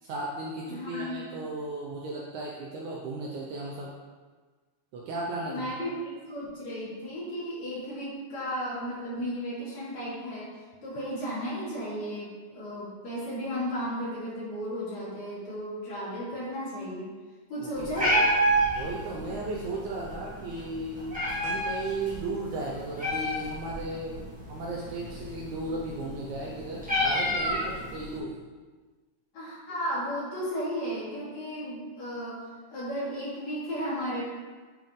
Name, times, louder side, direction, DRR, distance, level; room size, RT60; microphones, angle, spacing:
voice 1, 0.0-3.9 4.9-5.7 17.6-18.1 18.8-21.1 21.4-24.2 24.5-28.4, right 2 dB, 75° right, -3 dB, 1.9 m, -35 dB
voice 2, 0.7-1.2 5.4-10.5 10.8-17.1 17.5-18.3 29.3-32.4 32.7-34.2, equal, 55° left, -9 dB, 3.6 m, -34 dB
Meow, 17.7-28.2, equal, 5° right, 1.3 m, -30 dB
9.2 x 4.4 x 3.8 m, 1.4 s
omnidirectional pair, 4.0 m